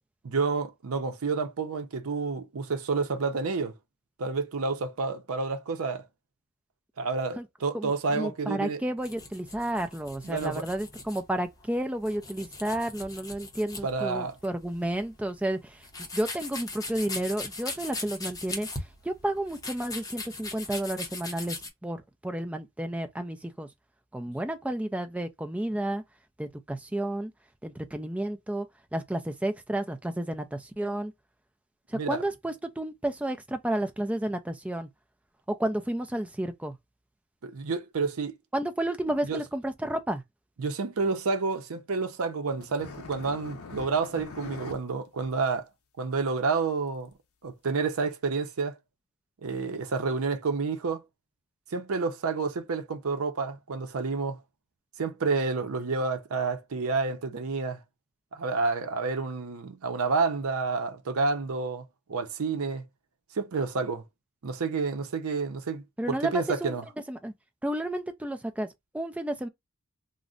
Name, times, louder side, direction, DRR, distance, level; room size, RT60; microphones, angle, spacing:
voice 1, 0.2-3.7 4.2-6.0 7.0-8.8 10.2-10.6 13.8-14.3 31.9-32.2 37.4-38.3 39.3-39.4 40.6-45.7 46.0-47.1 47.4-48.8 49.4-51.0 51.7-54.4 55.0-57.8 58.3-61.8 62.1-62.8 63.4-64.0 64.4-66.8, right 4 dB, 80° right, 0.6 m, -29 dB
voice 2, 7.7-18.7 19.0-21.6 21.8-23.7 24.1-26.0 26.4-27.3 27.6-28.7 28.9-31.1 31.9-34.9 35.5-36.7 38.5-40.2 66.0-66.7 67.1-67.3 67.6-68.7 68.9-69.5, right 1 dB, 5° right, 0.4 m, -31 dB
sound 1, 9.0-21.7, left 3 dB, 15° left, 0.7 m, -40 dB
sound 2, 42.6-44.8 45.1-45.3 45.5-45.6 46.3-46.4 47.1-47.2 48.0-48.1, left 4 dB, 85° left, 0.6 m, -43 dB
2.5 x 2.1 x 3.7 m
head